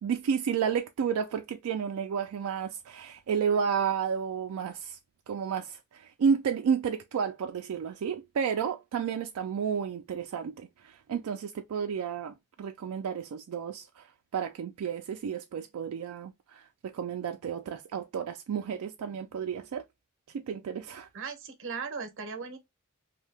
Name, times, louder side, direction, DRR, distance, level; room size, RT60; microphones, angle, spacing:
voice 1, 0.0-5.0 5.3-14.1 14.3-19.8 20.3-21.1, right 7 dB, 90° right, 0.3 m, -31 dB
voice 2, 21.1-22.6, right 5 dB, 60° right, 0.7 m, -37 dB
2.7 x 2.2 x 3.2 m
head